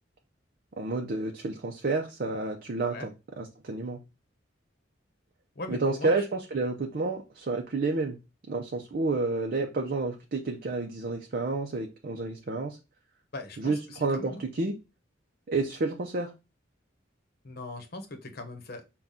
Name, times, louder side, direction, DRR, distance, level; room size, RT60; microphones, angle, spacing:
voice 1, 0.8-3.1 3.4-4.0 5.7-8.2 8.5-12.8 13.6-14.8 15.5-16.3, right 3 dB, 50° right, 0.6 m, -30 dB
voice 2, 5.5-6.2 13.3-14.4 17.4-18.9, left 2 dB, 55° left, 0.9 m, -40 dB
5.6 x 2.3 x 3.6 m
head